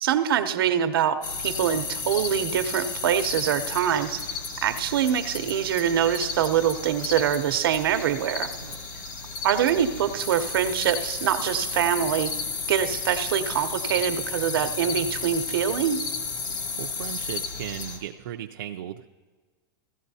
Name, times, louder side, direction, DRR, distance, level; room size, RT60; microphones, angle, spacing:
voice 1, 0.0-4.2 4.6-8.5 9.4-12.3 12.7-16.0, right 9 dB, 90° right, 9 dB, 0.8 m, -24 dB
sound 1, 1.2-18.0, left 4 dB, 60° left, 1.8 m, -33 dB
voice 2, 16.8-19.1, right 11 dB, 65° right, 3 dB, 0.4 m, -36 dB
16.0 x 13.5 x 2.8 m, 1.4 s
supercardioid pair, 175°, 12 cm